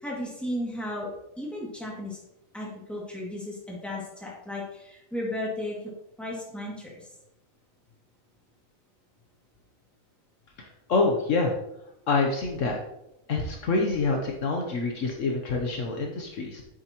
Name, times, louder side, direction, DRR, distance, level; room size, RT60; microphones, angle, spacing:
voice 1, 0.0-2.2 2.5-5.8 6.2-7.1, left 1 dB, ahead, -4 dB, 2.2 m, -34 dB
voice 2, 10.6-11.5 12.1-12.8 13.3-16.6, left 3 dB, 65° left, 1 dB, 1.3 m, -26 dB
8.7 x 6.9 x 3.0 m, 0.85 s
omnidirectional pair, 1.5 m